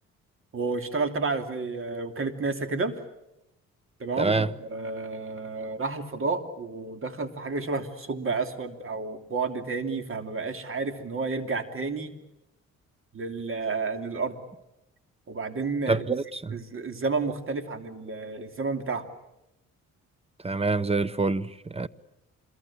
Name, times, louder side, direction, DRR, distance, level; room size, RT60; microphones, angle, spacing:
voice 1, 0.5-2.9 4.0-12.1 13.1-14.4 15.3-16.0 16.5-19.0, right 4 dB, 45° right, 3.0 m, -31 dB
voice 2, 4.2-4.5 15.9-16.6 20.4-21.9, right 3 dB, 20° right, 0.9 m, -26 dB
26.5 x 22.5 x 8.6 m
cardioid pair, 90°, 30 cm